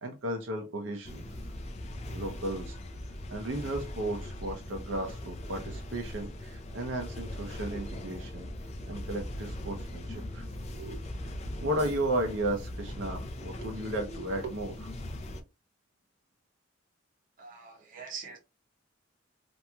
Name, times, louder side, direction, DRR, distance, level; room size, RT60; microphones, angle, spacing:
voice 1, 0.0-1.2 2.1-2.8 3.3-8.5 8.9-11.0 11.6-14.9, right 1 dB, 80° right, 0.6 m, -34 dB
sound 1, 1.0-15.4, left 1 dB, 35° left, 0.4 m, -40 dB
voice 2, 17.4-18.4, right 5 dB, 45° right, 0.8 m, -43 dB
2.9 x 2.6 x 2.2 m
head